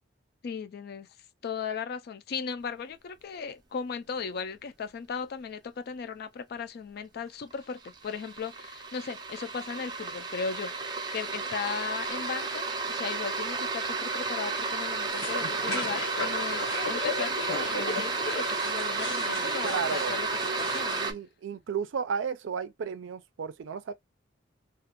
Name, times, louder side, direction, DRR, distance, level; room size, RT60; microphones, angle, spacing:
voice 1, 0.4-1.1 1.4-20.3 20.6-21.0, left 6 dB, 55° left, 0.3 m, -37 dB
sound 1, 7.0-7.1 7.4-21.1, right 4 dB, 25° right, 0.4 m, -32 dB
sound 2, 15.1-21.0, left 3 dB, 80° left, 1.3 m, -36 dB
voice 2, 19.3-20.2 21.0-23.9, right 6 dB, 85° right, 0.4 m, -34 dB
2.4 x 2.2 x 2.8 m
head